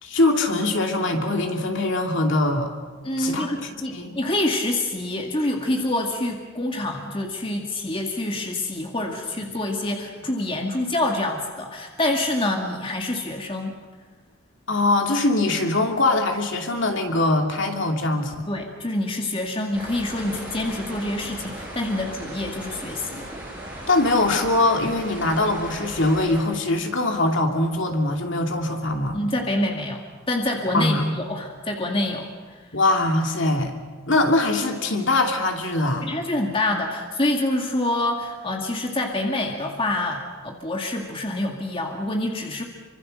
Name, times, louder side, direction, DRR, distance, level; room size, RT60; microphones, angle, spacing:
voice 1, 0.0-2.7 3.2-3.5 3.9-4.2 14.7-18.5 23.9-29.2 30.7-31.2 32.7-33.7 34.1-36.1, left 2 dB, 55° left, 3 dB, 2.7 m, -22 dB
voice 2, 3.0-13.8 18.5-23.3 29.1-30.0 30.3-32.6 36.0-42.6, left 1 dB, 25° left, 1 dB, 2.1 m, -26 dB
sound 1, 19.7-26.4, right 1 dB, 5° right, 5.8 m, -37 dB
27.0 x 25.0 x 6.6 m, 1.4 s
head